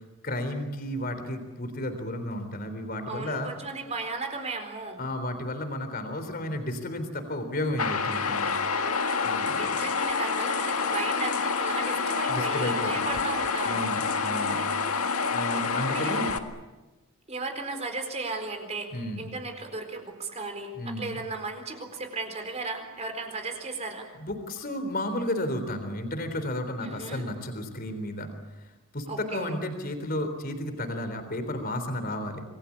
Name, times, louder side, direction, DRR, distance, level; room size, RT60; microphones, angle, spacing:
voice 1, 0.2-3.5 5.0-8.5 9.2-9.8 12.3-13.1 13.7-14.6 15.3-16.3 18.9-19.2 20.7-21.2 24.2-28.3 28.9-32.4, left 1 dB, 40° left, 8 dB, 3.7 m, -32 dB
voice 2, 3.1-5.0 8.7-9.2 9.6-13.8 15.9-16.3 17.3-24.1 26.8-27.3 29.1-29.5, right 3 dB, 30° right, 5 dB, 4.3 m, -35 dB
sound 1, 7.8-16.4, left 5 dB, 90° left, 1.8 m, -28 dB
27.0 x 21.5 x 8.6 m, 1.1 s
head